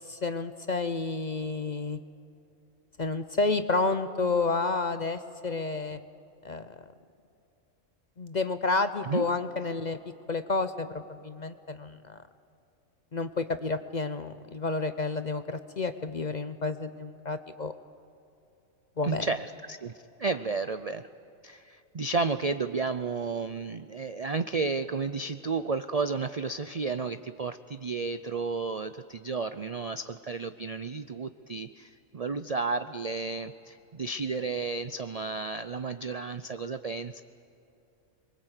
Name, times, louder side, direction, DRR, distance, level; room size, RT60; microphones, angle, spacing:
voice 1, 0.1-2.0 3.0-6.0 6.4-6.7 8.2-10.0 10.3-12.2 13.1-17.7 19.0-19.3, left 3 dB, 40° left, 10 dB, 0.7 m, -30 dB
voice 2, 19.0-19.9 20.2-21.1 21.4-37.2, right 4 dB, 50° right, 11 dB, 0.4 m, -32 dB
25.0 x 23.0 x 8.1 m, 2.8 s
omnidirectional pair, 1.4 m